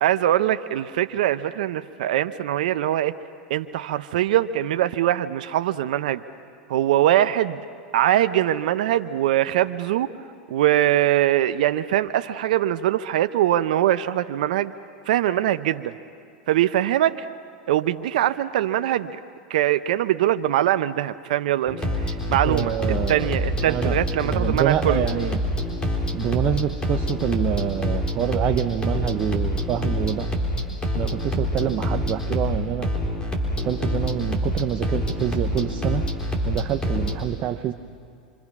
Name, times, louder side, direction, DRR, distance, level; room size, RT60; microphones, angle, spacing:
voice 1, 0.0-3.1 3.5-6.2 6.7-7.6 7.9-10.1 10.5-14.7 15.1-15.9 16.5-17.3 17.7-19.2 19.5-22.7 23.1-25.0, right 12 dB, 75° right, 11 dB, 0.7 m, -22 dB
sound 1, 21.7-37.2, equal, 20° left, 4.1 m, -26 dB
voice 2, 22.5-23.3 23.7-25.4 26.1-30.3 31.0-32.9 33.6-36.0 36.4-37.7, right 11 dB, 40° right, 7 dB, 0.8 m, -26 dB
26.5 x 25.5 x 6.0 m, 2.3 s
hypercardioid pair, 100°, 4 cm